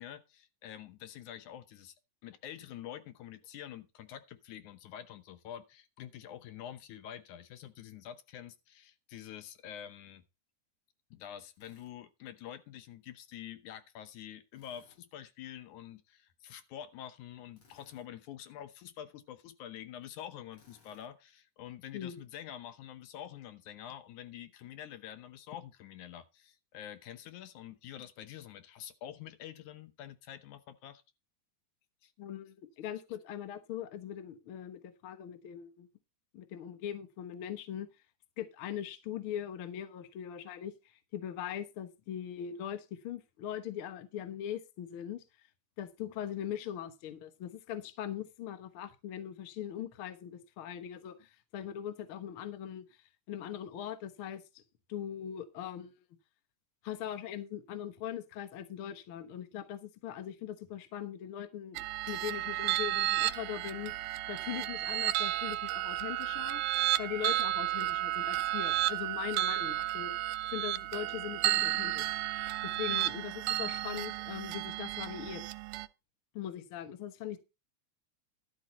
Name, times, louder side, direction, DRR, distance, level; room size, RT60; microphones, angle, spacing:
voice 1, 0.0-2.0 2.2-10.2 11.1-31.0 32.0-32.1 72.9-73.0, left 10 dB, 75° left, 2.3 m, -47 dB
Drill, 11.5-11.9 14.5-15.0 17.5-18.1 20.5-21.1, left 4 dB, 40° left, 3.4 m, -64 dB
voice 2, 32.2-35.9 36.3-37.9 38.4-45.2 45.8-54.6 54.9-56.0 56.8-63.9 64.3-66.6 67.0-70.1 70.4-72.1 72.6-75.4 76.3-77.4, left 10 dB, 55° left, 1.6 m, -41 dB
sound 1, 61.8-75.9, right 15 dB, 85° right, 2.2 m, -32 dB
12.0 x 7.9 x 4.2 m
omnidirectional pair, 3.7 m